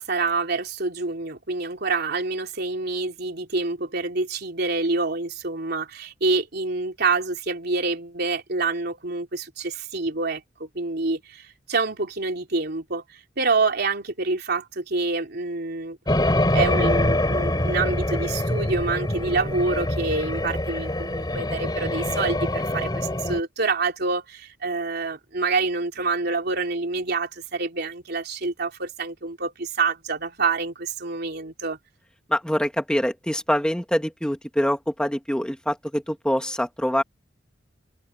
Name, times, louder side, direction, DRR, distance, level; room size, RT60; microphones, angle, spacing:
voice 1, 0.0-16.0 16.5-31.8, right 3 dB, 60° right, 3.5 m, -27 dB
sound 1, 16.1-23.4, left 1 dB, 25° left, 3.3 m, -24 dB
voice 2, 32.3-37.0, equal, 5° left, 2.1 m, -25 dB
head